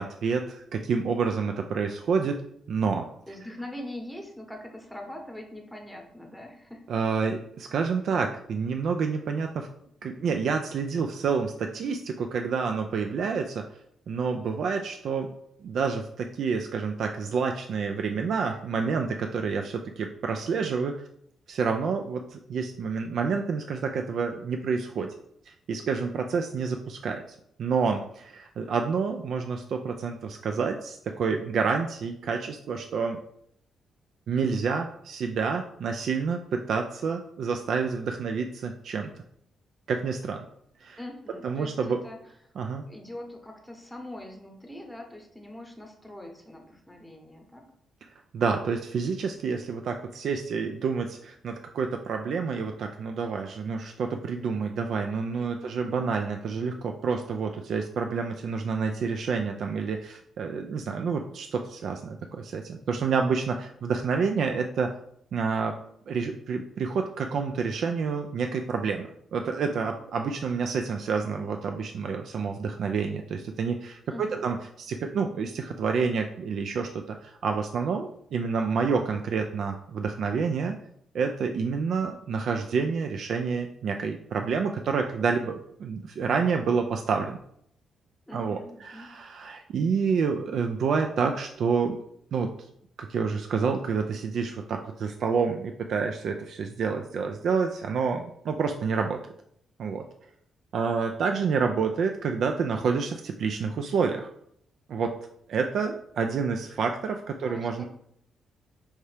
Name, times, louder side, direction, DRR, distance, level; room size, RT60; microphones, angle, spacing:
voice 1, 0.0-2.4 2.7-3.1 6.9-9.7 10.0-13.6 14.1-15.3 15.6-20.9 21.5-25.1 25.5-27.2 27.6-33.2 34.3-39.1 39.9-40.5 40.8-41.0 41.4-42.0 42.6-42.8 48.3-64.9 65.3-65.7 66.1-80.7 81.1-87.4 88.3-92.0 92.3-92.5 93.0-99.2 99.8-100.0 100.7-104.3 104.9-105.1 105.5-107.8, right 5 dB, 70° right, 4 dB, 0.3 m, -28 dB
voice 2, 3.3-6.9 41.0-42.5 42.9-47.6 55.4-56.1 74.1-74.5 88.3-89.1 107.4-107.8, left 1 dB, ahead, 1 dB, 0.9 m, -43 dB
4.6 x 2.7 x 3.3 m, 0.68 s
cardioid pair, 95°, 0 cm